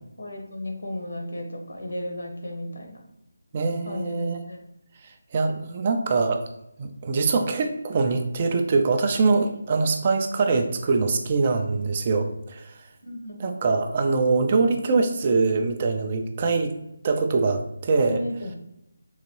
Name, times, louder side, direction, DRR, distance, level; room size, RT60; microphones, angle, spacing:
voice 1, 0.2-3.0 3.8-4.6 13.0-13.4 17.9-18.5, left 1 dB, 75° left, 2 dB, 0.9 m, -34 dB
voice 2, 3.5-4.4 5.0-6.4 6.8-12.8 13.4-16.7 17.0-18.2, right 4 dB, 35° right, 5 dB, 0.4 m, -23 dB
3.9 x 2.6 x 3.0 m, 0.82 s
figure-of-eight pair, 160°, 0 cm